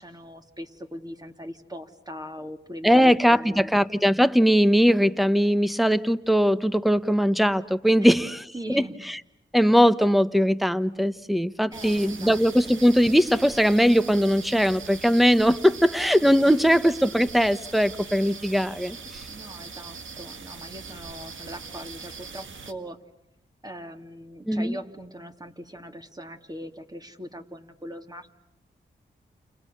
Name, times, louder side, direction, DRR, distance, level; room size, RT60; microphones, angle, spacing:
voice 1, 0.0-3.7 8.0-8.1 8.5-9.0 11.7-12.8 16.5-16.7 19.3-23.0 23.6-28.3, equal, 20° right, 2.9 m, -40 dB
voice 2, 2.8-8.4 8.7-9.2 9.5-19.3 24.5-24.8, equal, ahead, 1.3 m, -20 dB
sound 1, 11.7-22.7, right 5 dB, 80° right, 1.9 m, -41 dB
29.5 x 28.5 x 7.0 m
cardioid pair, 45°, 20 cm